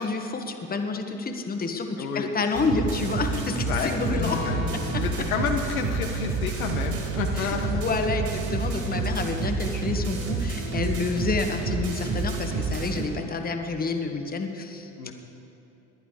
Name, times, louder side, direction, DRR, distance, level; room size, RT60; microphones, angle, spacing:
voice 1, 0.0-4.4 4.7-5.0 7.4-14.9, left 4 dB, 20° left, 5 dB, 1.5 m, -29 dB
voice 2, 2.0-2.3 3.3-3.9 4.4-4.6 5.0-8.1 9.2-9.4 15.0-15.1, left 6 dB, 85° left, 3 dB, 1.3 m, -30 dB
sound 1, 2.5-13.0, right 4 dB, 45° right, 4.3 m, -29 dB
sound 2, 4.2-9.4, left 4 dB, 60° left, 3.0 m, -38 dB
19.5 x 11.0 x 5.0 m, 2.9 s
hypercardioid pair, 80°, 41 cm